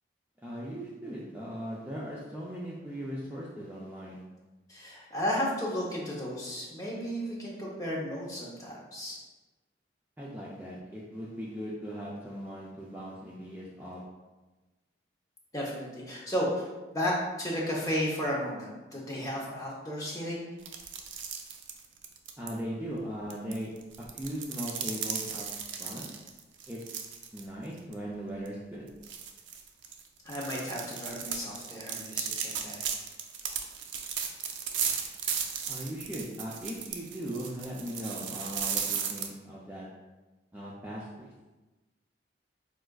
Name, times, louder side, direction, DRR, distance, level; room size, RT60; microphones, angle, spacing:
voice 1, 0.4-4.2 10.2-14.0 22.4-23.7 24.0-25.5 25.8-26.1 26.7-27.0 27.3-28.9 35.7-39.9 40.5-41.3, equal, 10° right, -6 dB, 0.3 m, -39 dB
voice 2, 4.7-9.2 15.5-16.7 16.9-20.4 30.2-32.8, equal, 20° left, -5 dB, 0.7 m, -33 dB
sound 1, 20.6-22.5 23.3-27.4 27.8-27.9 28.5-28.6 29.0-39.3, right 7 dB, 85° right, 0.4 m, -35 dB
4.5 x 2.4 x 2.2 m, 1.2 s
head